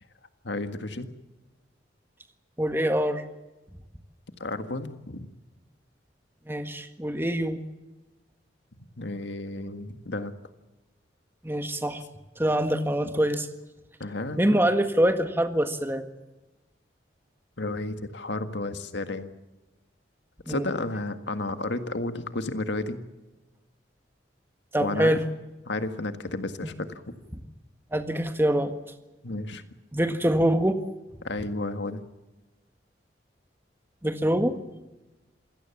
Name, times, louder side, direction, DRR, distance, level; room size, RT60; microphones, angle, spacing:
voice 1, 0.4-1.1 4.4-5.3 9.0-10.3 14.0-14.5 17.6-19.3 20.5-23.0 24.8-25.1 25.7-27.0 29.2-29.6 31.2-32.0, left 2 dB, 80° left, 9 dB, 1.8 m, -32 dB
voice 2, 2.6-3.2 6.5-7.6 11.4-12.0 12.4-13.5 14.4-16.1 20.5-20.6 24.7-25.2 26.6-26.7 27.9-28.7 29.9-30.8 34.0-34.8, right 1 dB, 15° right, 8 dB, 1.7 m, -25 dB
27.0 x 17.0 x 7.2 m, 1.1 s
head